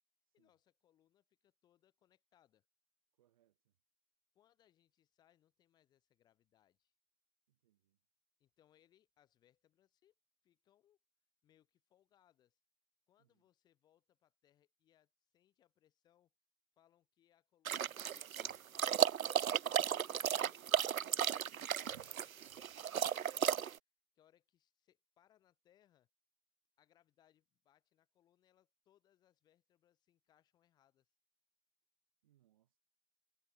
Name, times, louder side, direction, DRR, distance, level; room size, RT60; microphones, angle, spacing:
voice 1, 0.3-2.7 4.3-6.9 8.4-10.1 10.4-11.0 11.4-12.6 13.1-16.3 16.8-23.6 24.1-26.1 26.8-31.1, left 11 dB, 10° left, 8.0 m, -74 dB
voice 2, 3.2-3.7 7.5-8.0 13.2-13.4 32.2-32.8, right 13 dB, 25° right, 3.9 m, -77 dB
sound 1, 17.7-23.8, right 9 dB, 65° right, 0.6 m, -34 dB
figure-of-eight pair, 160°, 45 cm